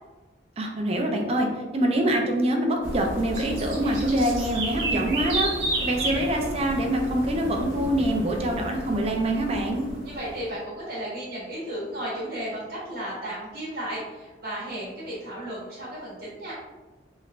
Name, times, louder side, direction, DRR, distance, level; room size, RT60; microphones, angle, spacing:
voice 1, 0.6-1.5 1.7-5.5 5.8-9.8, right 1 dB, 35° right, 2 dB, 0.4 m, -25 dB
sound 1, 2.8-10.5, right 2 dB, 85° right, 1.0 m, -31 dB
voice 2, 10.0-16.5, right 1 dB, 60° right, -7 dB, 1.0 m, -34 dB
3.1 x 3.1 x 2.4 m, 1.2 s
head